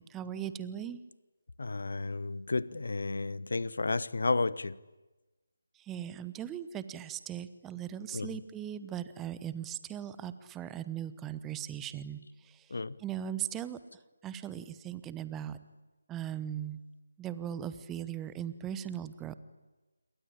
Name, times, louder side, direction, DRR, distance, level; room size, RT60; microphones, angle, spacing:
voice 1, 0.1-1.0 5.9-12.2 13.0-13.8 14.2-15.6 16.1-16.8 17.2-19.3, right 10 dB, 10° right, 0.9 m, -38 dB
voice 2, 1.6-4.8 8.1-8.4 12.7-13.0, left 3 dB, 55° left, 1.0 m, -32 dB
27.5 x 22.5 x 8.8 m
figure-of-eight pair, 155°, 0 cm